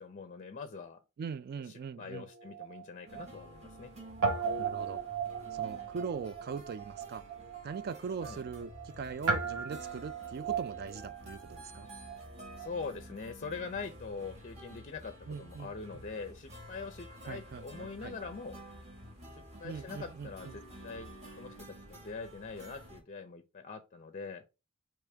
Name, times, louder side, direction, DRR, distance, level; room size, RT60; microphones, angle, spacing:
voice 1, 0.0-1.0 1.7-3.9 8.2-8.4 12.6-15.1 15.4-18.6 19.3-21.1 21.4-24.4, left 4 dB, 35° left, 0.5 m, -43 dB
voice 2, 1.2-2.3 4.6-5.0 5.5-7.2 7.6-11.9 15.3-16.0 17.2-18.2 19.6-20.6, right 5 dB, 45° right, 0.3 m, -41 dB
Guitar, 2.1-3.9 4.2-12.8, right 5 dB, 85° right, 0.9 m, -37 dB
sound 1, 3.1-23.0, right 1 dB, 30° right, 1.7 m, -52 dB
sound 2, 8.1-21.1, equal, 10° right, 2.1 m, -56 dB
4.9 x 3.0 x 3.3 m
head